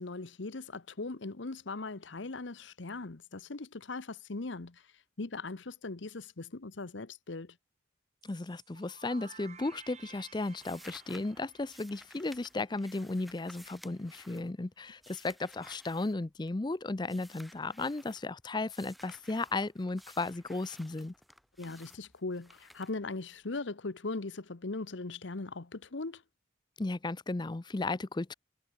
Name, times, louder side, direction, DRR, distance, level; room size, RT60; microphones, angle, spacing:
voice 1, 0.0-4.8 5.2-7.5 21.6-26.2, left 3 dB, 70° left, 1.0 m, -39 dB
voice 2, 8.2-21.1 26.8-28.3, left 2 dB, 20° left, 0.5 m, -35 dB
sound 1, 8.2-13.0, right 6 dB, 35° right, 3.1 m, -55 dB
sound 2, 9.2-9.7 9.9-16.7 17.0-18.2 18.7-23.6, equal, ahead, 7.0 m, -56 dB
head